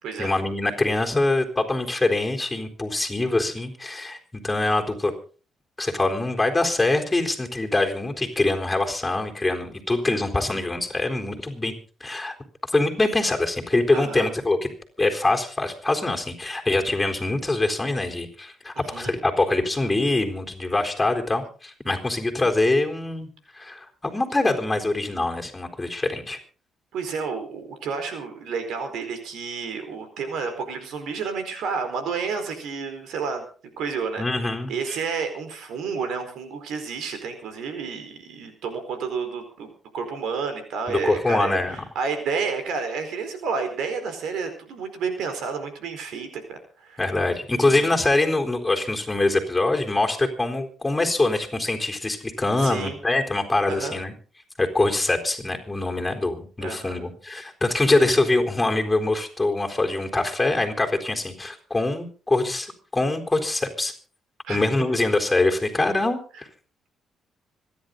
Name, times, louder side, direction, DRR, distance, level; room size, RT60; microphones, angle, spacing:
voice 1, 0.2-5.1 5.8-11.7 12.0-12.3 12.7-14.7 15.0-23.3 23.5-26.4 34.2-34.7 40.9-41.8 47.0-54.1 54.6-63.9 64.5-66.5, left 2 dB, 15° left, 4 dB, 4.0 m, -24 dB
voice 2, 13.9-14.3 18.8-19.1 26.9-33.4 33.8-39.7 39.9-47.0 47.6-48.1 52.6-53.0 53.7-54.0 56.6-57.1 64.5-64.6, right 5 dB, 80° right, 8 dB, 4.4 m, -30 dB
26.0 x 11.0 x 3.9 m, 0.39 s
cardioid pair, 90°, 0 cm